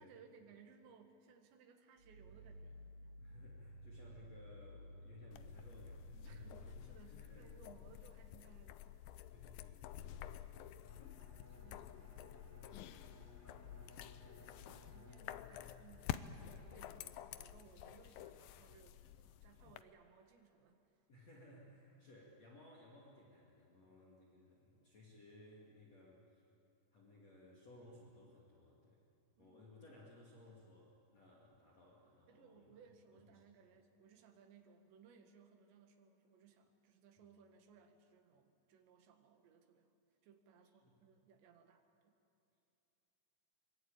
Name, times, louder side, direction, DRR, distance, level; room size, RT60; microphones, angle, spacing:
voice 1, 0.0-2.8 6.2-8.8 11.5-12.1 14.3-20.8 29.4-29.7 32.3-40.0 40.2-42.1, right 6 dB, 85° right, 5 dB, 3.9 m, -64 dB
Growling, 2.0-6.9, equal, 45° right, 3.0 m, -54 dB
voice 2, 3.2-6.5 7.1-7.5 9.3-11.3 13.6-14.0 21.1-26.4 26.9-29.0 29.4-32.8 33.3-33.4 40.8-41.0, left 1 dB, 45° left, -3 dB, 3.2 m, -61 dB
sound 1, 5.3-19.8, left 12 dB, 80° left, 2.1 m, -50 dB
Bowed string instrument, 10.8-16.5, left 1 dB, 5° left, 5.4 m, -62 dB
24.0 x 23.5 x 8.9 m, 2.7 s
omnidirectional pair, 5.0 m